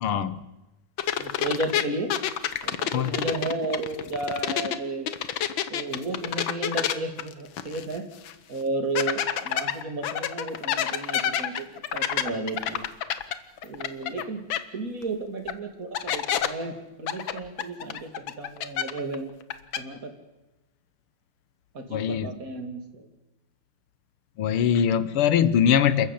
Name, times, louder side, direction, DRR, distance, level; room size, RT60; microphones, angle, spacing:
voice 1, 0.0-0.4 2.9-3.2 21.9-22.3 24.4-26.1, left 8 dB, 85° left, 15 dB, 1.9 m, -22 dB
sound 1, 1.0-4.8 5.1-8.0 8.3-8.4 9.0-14.2 14.5-14.6 15.5-15.6 15.9-16.5 17.1-19.2 19.4-19.8, left 10 dB, 70° left, 1.7 m, -28 dB
voice 2, 1.2-2.1 2.6-5.1 5.7-8.0 8.5-11.7 11.9-12.8 13.6-14.4 14.7-18.1 18.4-19.3 19.8-20.1 21.7-23.1, right 2 dB, 40° right, 5 dB, 3.1 m, -33 dB
28.5 x 13.5 x 8.7 m, 1.0 s
omnidirectional pair, 2.3 m